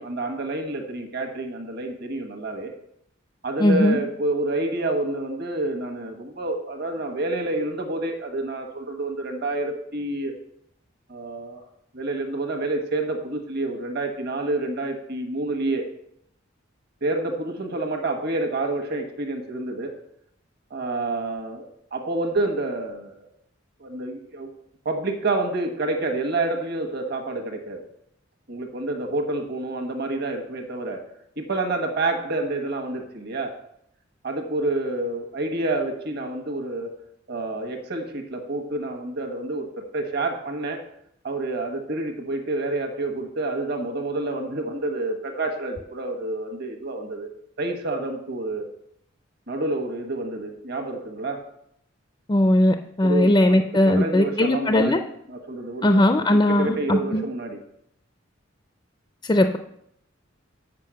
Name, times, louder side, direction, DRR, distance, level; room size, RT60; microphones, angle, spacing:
voice 1, 0.0-2.7 3.4-10.3 11.1-11.6 11.9-15.8 17.0-19.9 20.7-23.3 23.8-24.5 24.8-27.8 28.5-31.0 31.4-33.5 34.2-36.9 37.3-40.8 41.2-47.3 47.6-48.7 49.5-51.4 53.0-53.6 53.8-55.0 55.3-56.0 56.3-57.6, right 2 dB, 50° right, 4 dB, 1.3 m, -28 dB
voice 2, 3.6-4.0 52.3-55.0 55.8-57.2 59.2-59.6, left 1 dB, 20° left, 7 dB, 0.4 m, -19 dB
7.5 x 5.4 x 7.5 m, 0.74 s
head